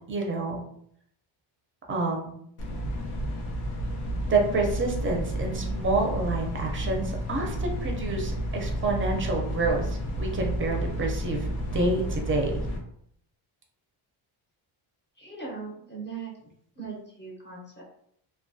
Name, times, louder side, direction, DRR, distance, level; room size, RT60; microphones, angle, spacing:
voice 1, 0.1-0.6 1.9-2.3 4.3-12.6, right 2 dB, 25° right, 0 dB, 0.4 m, -28 dB
sound 1, 2.6-12.8, right 1 dB, 90° left, 0.7 m, -31 dB
voice 2, 15.2-17.8, right 5 dB, 20° left, -4 dB, 0.6 m, -40 dB
2.2 x 2.2 x 2.6 m, 0.69 s
cardioid pair, 135°, 49 cm